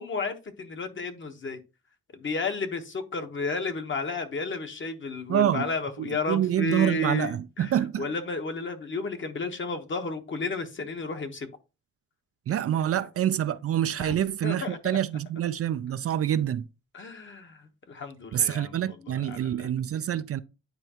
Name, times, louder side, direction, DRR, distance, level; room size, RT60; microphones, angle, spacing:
voice 1, 0.0-1.6 2.1-11.5 12.7-13.0 14.0-14.2 14.4-15.0 16.9-19.7, left 3 dB, 40° left, 1.2 m, -33 dB
voice 2, 5.3-5.7 6.0-8.1 12.5-16.7 18.3-20.4, right 10 dB, 50° right, 0.4 m, -26 dB
9.6 x 4.5 x 2.9 m
cardioid pair, 100°, 30 cm